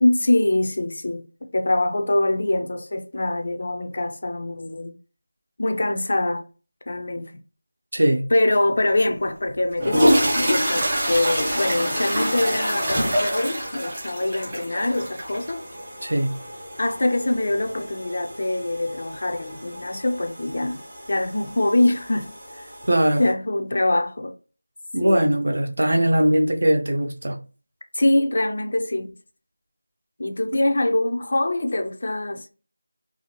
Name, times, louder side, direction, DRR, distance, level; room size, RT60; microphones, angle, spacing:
voice 1, 0.0-4.9 5.6-6.4 6.9-7.3 8.3-15.7 16.8-20.8 21.1-22.7 23.2-24.3 25.0-25.3 27.9-29.2 30.2-32.5, left 1 dB, 35° left, 0.3 m, -24 dB
voice 2, 7.9-8.3 16.0-16.3 22.9-23.2 24.9-27.4, right 1 dB, 55° right, 0.6 m, -20 dB
sound 1, 9.0-9.1 9.7-23.3, equal, 15° right, 0.6 m, -27 dB
2.6 x 2.3 x 2.8 m
figure-of-eight pair, 180°, 0 cm